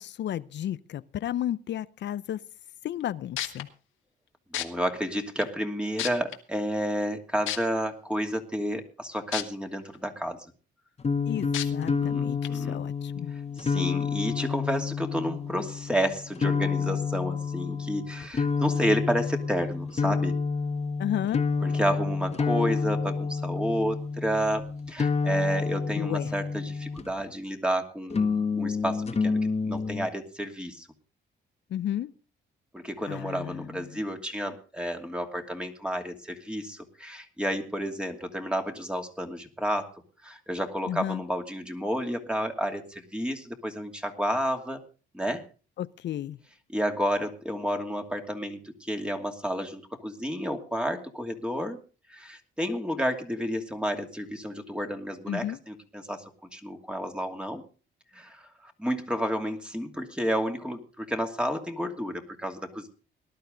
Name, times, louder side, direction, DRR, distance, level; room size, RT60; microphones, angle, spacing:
voice 1, 0.0-2.4 2.8-3.7 11.3-13.3 21.0-21.4 25.9-26.3 31.7-32.1 33.1-34.0 40.9-41.2 45.8-46.4 55.3-55.6, left 11 dB, 65° left, 0.6 m, -33 dB
sound 1, 3.0-3.1 3.4-3.6 4.5-4.6 5.4-5.5 6.0-6.3 7.5-7.6 9.3-9.4 9.9-10.0 11.5-11.6 12.4-12.5, left 12 dB, 85° left, 1.6 m, -30 dB
voice 2, 4.5-10.4 12.0-12.8 13.6-20.3 21.6-30.9 32.7-39.9 40.2-44.8 45.1-45.4 46.7-51.8 52.1-56.2 56.5-57.6 58.1-62.9, equal, 5° right, 2.6 m, -31 dB
sound 2, 11.0-27.3 28.1-30.1, left 5 dB, 30° left, 1.5 m, -29 dB
19.0 x 12.0 x 3.9 m
cardioid pair, 90°, 20 cm